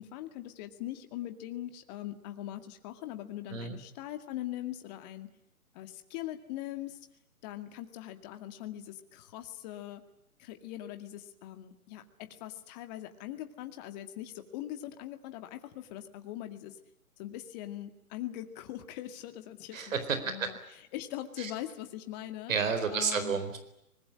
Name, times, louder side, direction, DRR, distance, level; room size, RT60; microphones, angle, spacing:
voice 1, 0.0-5.3 5.7-7.0 7.4-10.0 10.4-16.8 17.2-19.9 20.2-20.6 20.9-22.5 22.9-23.4, left 13 dB, 30° left, 8 dB, 2.2 m, -41 dB
voice 2, 19.7-20.5 21.4-21.5 22.5-23.6, right 5 dB, 60° right, 9 dB, 4.3 m, -31 dB
24.0 x 20.5 x 9.9 m, 0.81 s
hypercardioid pair, 140°, 43 cm